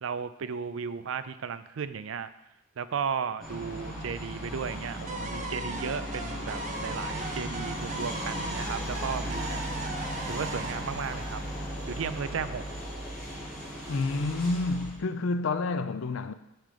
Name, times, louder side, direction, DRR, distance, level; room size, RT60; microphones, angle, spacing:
voice 1, 0.0-2.3 2.8-9.6 10.3-11.4 11.9-12.7, right 6 dB, 75° right, 0.4 m, -35 dB
sound 1, 3.4-14.9, equal, ahead, 2.5 m, -36 dB
sound 2, 5.1-12.0, right 2 dB, 35° right, 0.7 m, -39 dB
voice 2, 13.9-16.3, left 3 dB, 70° left, 0.5 m, -29 dB
6.4 x 5.0 x 6.7 m
head